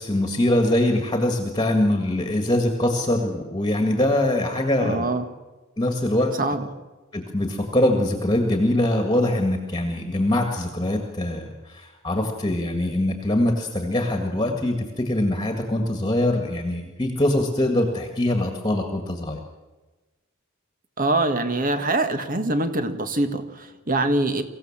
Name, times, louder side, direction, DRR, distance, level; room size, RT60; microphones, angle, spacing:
voice 1, 0.0-5.1 5.8-6.3 7.1-19.4, left 1 dB, 20° left, 4 dB, 1.9 m, -23 dB
voice 2, 4.8-5.3 6.4-6.7 21.0-24.4, right 2 dB, 40° right, 9 dB, 1.7 m, -24 dB
24.0 x 15.5 x 7.4 m, 1.2 s
head